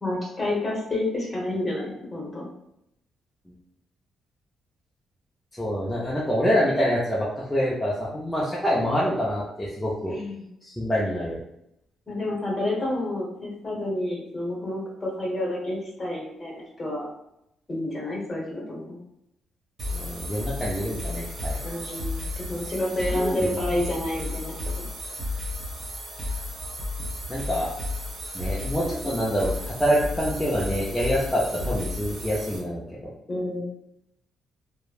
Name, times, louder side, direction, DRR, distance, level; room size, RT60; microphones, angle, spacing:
voice 1, 0.0-2.5 10.1-10.4 12.1-17.1 17.7-19.0 21.6-24.8 33.3-33.7, left 1 dB, 25° left, -3 dB, 1.1 m, -29 dB
voice 2, 5.6-10.1 10.6-11.4 19.9-21.6 23.1-23.5 27.3-27.7 28.3-33.1, equal, 10° left, -7 dB, 0.6 m, -26 dB
sound 1, 19.8-32.6, left 2 dB, 45° right, 1.1 m, -33 dB
3.0 x 2.2 x 2.4 m, 0.80 s
cardioid pair, 90°, 0 cm